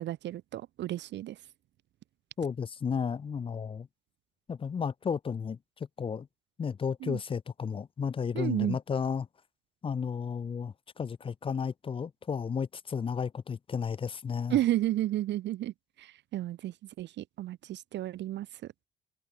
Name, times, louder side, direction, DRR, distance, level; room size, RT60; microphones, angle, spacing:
voice 1, 0.0-1.4 7.0-7.2 8.3-8.8 14.5-15.7 16.0-18.5, right 14 dB, 65° right, 0.4 m, -32 dB
voice 2, 2.4-3.9 4.5-5.6 6.0-6.3 6.6-9.3 9.8-14.6, left 6 dB, 25° left, 0.4 m, -33 dB
cardioid pair, 90°, 20 cm